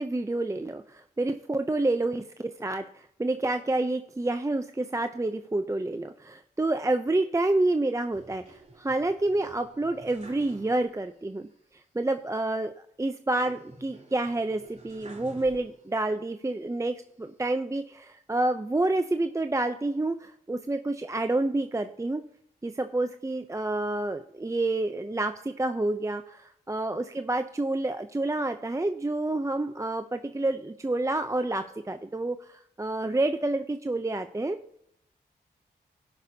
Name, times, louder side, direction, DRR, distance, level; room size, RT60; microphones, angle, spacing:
voice 1, 0.0-11.5 11.9-12.7 13.0-22.2 22.6-34.6, right 2 dB, 20° right, 8 dB, 0.6 m, -28 dB
sound 1, 8.1-11.2 11.5-11.6 13.4-16.1 16.6-17.5, right 1 dB, 40° right, 3.1 m, -51 dB
17.0 x 6.1 x 2.8 m, 0.72 s
cardioid pair, 50°, 18 cm